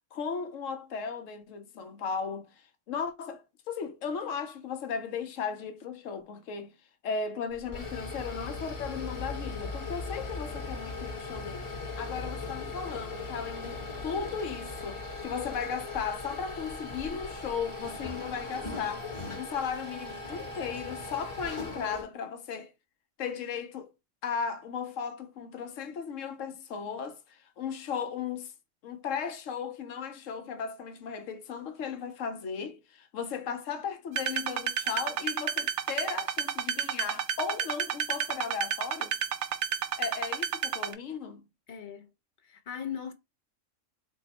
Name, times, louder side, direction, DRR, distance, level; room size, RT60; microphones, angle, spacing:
voice 1, 0.1-2.5 2.9-6.7 7.0-19.1 19.4-22.7 23.2-23.9 24.2-28.5 28.8-39.1 40.0-41.5, left 6 dB, 80° left, 1.0 m, -36 dB
sound 1, 7.5-22.0, left 3 dB, 25° left, 0.9 m, -39 dB
sound 2, 34.2-40.9, right 8 dB, 70° right, 0.9 m, -31 dB
voice 2, 41.7-42.1 42.4-43.1, left 8 dB, 55° left, 0.6 m, -38 dB
4.3 x 2.1 x 4.0 m
omnidirectional pair, 1.3 m